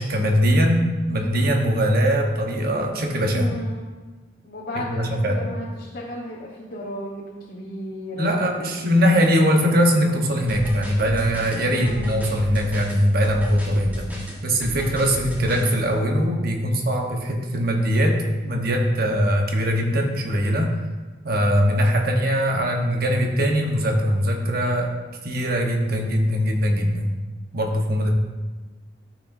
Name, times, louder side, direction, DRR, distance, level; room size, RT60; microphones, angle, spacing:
voice 1, 0.0-3.5 4.7-5.4 8.2-14.1 14.4-20.7 21.2-24.9 25.2-27.2 27.5-28.1, equal, 55° right, 2 dB, 1.1 m, -21 dB
voice 2, 3.3-3.9 4.4-8.9 11.6-12.2, left 1 dB, 55° left, -5 dB, 1.2 m, -34 dB
sound 1, 10.5-15.8, equal, 10° right, 1.4 m, -34 dB
13.0 x 6.0 x 2.7 m, 1.3 s
head